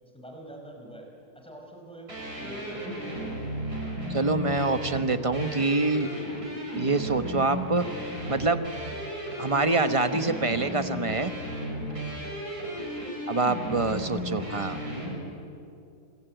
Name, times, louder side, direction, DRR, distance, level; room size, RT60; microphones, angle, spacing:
voice 1, 0.0-1.1 1.3-3.4, right 1 dB, 5° left, 1 dB, 5.2 m, -46 dB
sound 1, 2.1-15.2, equal, 70° right, 6.6 m, -34 dB
voice 2, 4.1-6.1 6.8-7.9 8.3-8.6 9.4-11.3 13.3-14.8, right 3 dB, 25° right, 9 dB, 1.0 m, -25 dB
26.0 x 23.5 x 9.1 m, 2.6 s
omnidirectional pair, 1.7 m